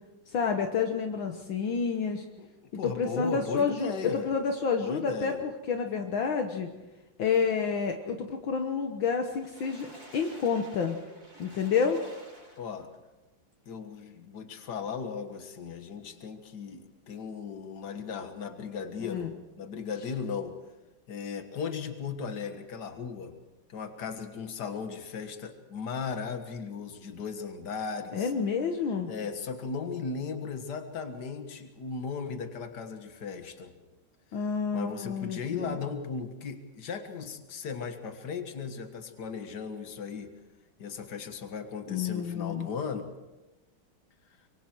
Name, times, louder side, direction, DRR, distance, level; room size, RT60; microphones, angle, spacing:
voice 1, 0.3-2.2 2.8-3.9 4.2-6.7 7.2-9.9 10.1-11.0 11.4-12.0 19.0-19.3 28.1-29.1 34.3-35.8 41.9-42.7, left 6 dB, 70° left, 4 dB, 1.9 m, -29 dB
voice 2, 2.4-4.3 4.8-5.4 12.6-12.9 13.7-20.6 21.1-23.3 23.7-28.3 29.1-33.7 34.7-40.3 40.8-43.1, left 6 dB, 55° left, 7 dB, 2.1 m, -37 dB
Water / Splash splatter, 9.2-13.0 13.5-13.6 14.0-14.1, right 1 dB, 40° right, 6.8 m, -51 dB
25.5 x 23.0 x 4.6 m, 1.0 s
omnidirectional pair, 2.3 m